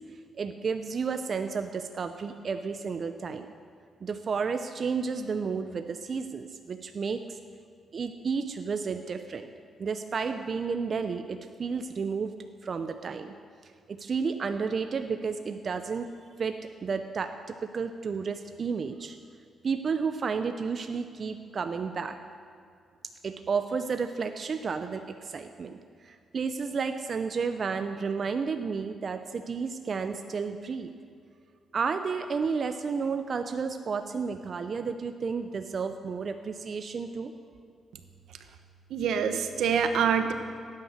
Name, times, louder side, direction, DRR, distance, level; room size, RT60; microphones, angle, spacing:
voice 1, 0.4-3.5 4.0-7.4 7.9-9.5 9.8-12.3 12.6-13.3 13.9-16.1 16.4-19.2 19.6-22.2 23.2-25.8 26.0-30.9 31.7-37.3, right 5 dB, 50° right, 8 dB, 0.7 m, -32 dB
voice 2, 38.9-40.3, right 7 dB, 85° right, 8 dB, 1.1 m, -25 dB
17.0 x 9.5 x 6.6 m, 2.3 s
cardioid pair, 90°, 0 cm